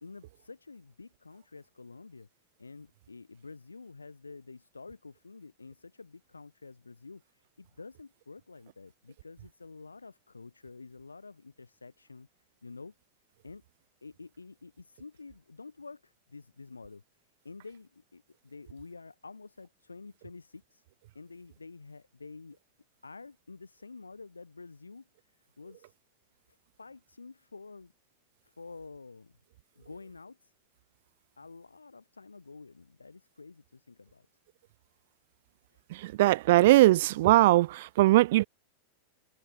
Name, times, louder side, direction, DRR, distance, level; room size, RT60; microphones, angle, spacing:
voice 1, 0.0-2.3 2.6-12.3 12.6-12.9 13.4-13.6 14.0-17.0 17.4-20.8 21.1-22.6 23.0-25.1 25.6-25.9 26.8-27.9 28.4-29.4 29.8-30.5 31.4-34.3 35.7-35.8, left 4 dB, 80° left, 3.1 m, -49 dB
voice 2, 35.9-38.5, right 17 dB, 55° right, 0.3 m, -21 dB
figure-of-eight pair, 90°, 0 cm